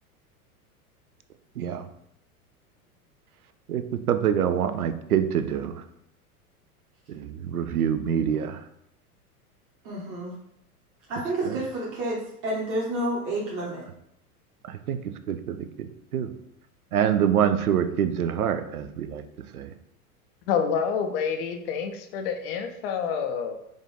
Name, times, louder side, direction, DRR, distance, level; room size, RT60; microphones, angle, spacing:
voice 1, 1.6-1.9 3.7-5.8 7.1-8.6 11.5-11.6 14.7-15.0 15.3-16.3 16.9-19.2 19.5-19.7, right 9 dB, 70° right, 10 dB, 0.6 m, -26 dB
voice 2, 9.8-10.3 11.1-13.8, right 1 dB, 30° right, -6 dB, 1.1 m, -29 dB
voice 3, 20.5-23.6, left 6 dB, 40° left, 5 dB, 0.5 m, -28 dB
5.3 x 2.5 x 3.4 m, 0.77 s
figure-of-eight pair, 90°, 46 cm